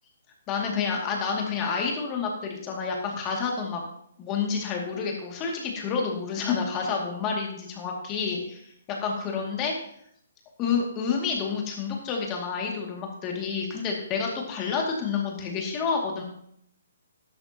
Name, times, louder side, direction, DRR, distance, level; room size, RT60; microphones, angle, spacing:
voice 1, 0.5-3.8 4.2-8.6 8.9-9.7 10.6-16.2, left 5 dB, 20° left, 0 dB, 2.4 m, -29 dB
13.0 x 11.5 x 2.9 m, 0.68 s
hypercardioid pair, 160°, 0 cm